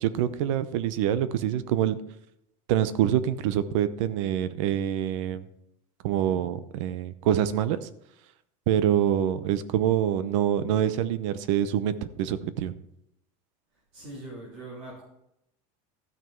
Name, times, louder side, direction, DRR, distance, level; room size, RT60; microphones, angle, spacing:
voice 1, 0.0-2.0 2.7-5.4 6.0-7.9 8.7-12.7, right 10 dB, 65° right, 14 dB, 0.8 m, -25 dB
voice 2, 13.9-15.0, right 2 dB, 45° right, -6 dB, 3.6 m, -41 dB
13.5 x 6.3 x 4.5 m, 0.80 s
supercardioid pair, 170°, 17 cm